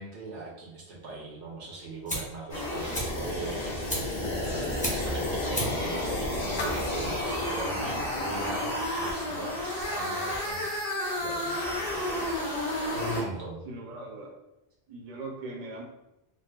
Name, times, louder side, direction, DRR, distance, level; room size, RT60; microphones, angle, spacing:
voice 1, 0.0-10.7 11.2-11.6 12.9-13.6, right 2 dB, 85° right, -2 dB, 1.1 m, -40 dB
Fire, 1.6-12.1, equal, 10° left, 0.6 m, -39 dB
sound 1, 2.5-13.2, left 1 dB, 90° left, 1.4 m, -31 dB
sound 2, 2.6-8.6 9.0-9.1 10.5-10.6, left 2 dB, 55° left, 0.5 m, -44 dB
voice 2, 13.6-14.3 14.9-15.8, right 2 dB, 45° right, -1 dB, 0.6 m, -40 dB
4.0 x 2.1 x 2.3 m, 0.92 s
omnidirectional pair, 1.1 m